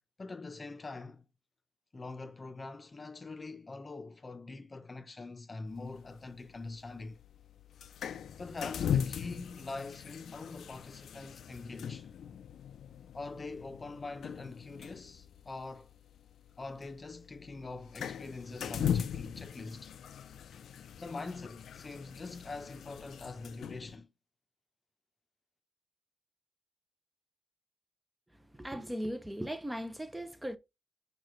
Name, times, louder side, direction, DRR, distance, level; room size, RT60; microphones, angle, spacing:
voice 1, 0.2-1.3 1.9-7.2 8.4-12.1 13.1-15.9 16.6-19.9 21.0-24.1, left 3 dB, 30° left, 0.7 m, -44 dB
sound 1, 5.7-24.0, left 8 dB, 75° left, 0.5 m, -40 dB
voice 2, 28.5-30.6, equal, 10° right, 0.6 m, -38 dB
5.2 x 4.8 x 3.8 m
cardioid pair, 100°, 0 cm